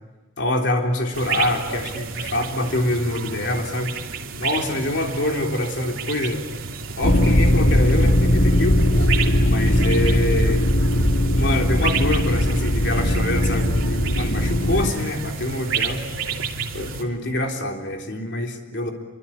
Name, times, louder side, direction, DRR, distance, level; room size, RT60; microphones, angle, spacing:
voice 1, 0.4-4.0 4.4-6.4 7.0-9.1 9.4-10.6 11.3-16.1 16.7-18.9, left 1 dB, 60° left, 2 dB, 3.6 m, -25 dB
sound 1, 1.1-17.0, right 4 dB, 85° right, 2.8 m, -31 dB
sound 2, 7.0-14.9, left 1 dB, 80° left, 2.1 m, -19 dB
27.0 x 24.5 x 8.8 m, 1.2 s
head